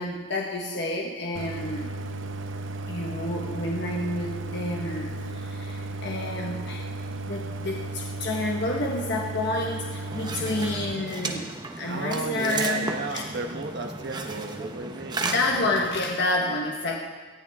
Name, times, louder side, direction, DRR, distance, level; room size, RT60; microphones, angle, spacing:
voice 1, 0.0-1.9 2.9-6.9 7.2-11.5 11.8-13.2 15.2-17.0, left 2 dB, 60° left, -1 dB, 1.4 m, -29 dB
Idling, 1.3-10.9, right 2 dB, 75° right, 0.8 m, -34 dB
sound 1, 10.1-16.2, right 3 dB, 20° right, 0.9 m, -34 dB
voice 2, 11.9-15.3, right 2 dB, 60° right, 4 dB, 1.2 m, -34 dB
18.5 x 13.5 x 3.6 m, 1.4 s
head